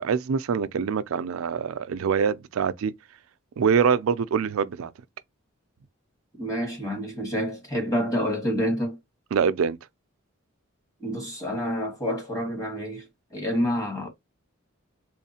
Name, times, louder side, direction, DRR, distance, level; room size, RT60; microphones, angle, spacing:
voice 1, 0.0-2.9 3.6-4.9 9.3-9.8, right 6 dB, 80° right, 0.4 m, -24 dB
voice 2, 6.4-9.0 11.0-14.1, equal, 15° left, 1.3 m, -28 dB
3.5 x 3.1 x 2.8 m
head